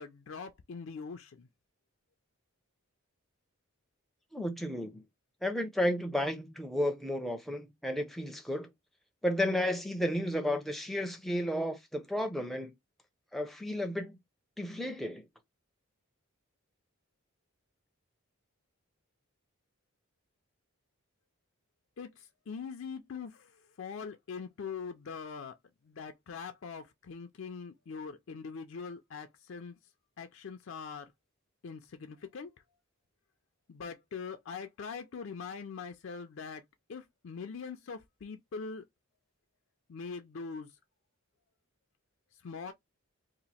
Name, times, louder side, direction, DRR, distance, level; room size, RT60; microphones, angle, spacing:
voice 1, 0.0-1.5 22.0-22.1 22.5-23.4 23.8-25.5 25.9-29.7 30.2-31.1 31.6-32.5 33.7-36.6 36.9-38.8 39.9-40.7 42.4-42.7, left 5 dB, 60° left, 0.4 m, -42 dB
voice 2, 4.3-5.0 5.4-8.7 9.2-12.7 13.3-14.2 14.6-15.2, left 1 dB, ahead, 0.5 m, -32 dB
2.9 x 2.4 x 4.1 m
head